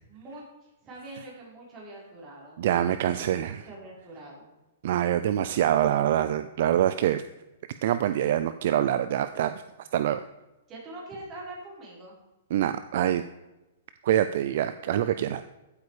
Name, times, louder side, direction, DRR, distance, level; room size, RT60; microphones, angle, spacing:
voice 1, 0.1-4.5 10.7-12.2, right 2 dB, 20° right, -4 dB, 5.1 m, -44 dB
voice 2, 2.6-3.6 4.8-7.2 7.8-9.5 9.8-10.2 12.5-13.2 14.0-15.4, right 11 dB, 55° right, 12 dB, 0.5 m, -25 dB
15.0 x 8.4 x 5.0 m, 1.0 s
hypercardioid pair, 160°, 0 cm